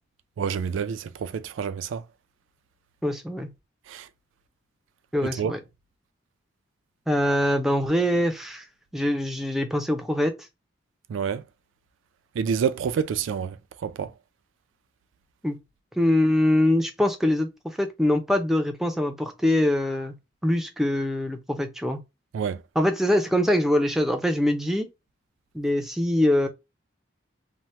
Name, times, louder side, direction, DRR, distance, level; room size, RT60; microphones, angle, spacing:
voice 1, 0.4-2.0 3.9-4.1 5.4-5.5 11.1-11.4 12.4-13.6 13.8-14.1 22.3-22.6, right 7 dB, 80° right, 0.3 m, -28 dB
voice 2, 3.0-3.5 5.1-5.6 7.1-8.6 8.9-10.3 15.4-15.6 16.0-17.5 17.8-20.1 20.4-22.0 22.8-24.9 25.5-26.5, left 1 dB, ahead, 0.4 m, -23 dB
2.8 x 2.1 x 3.0 m
head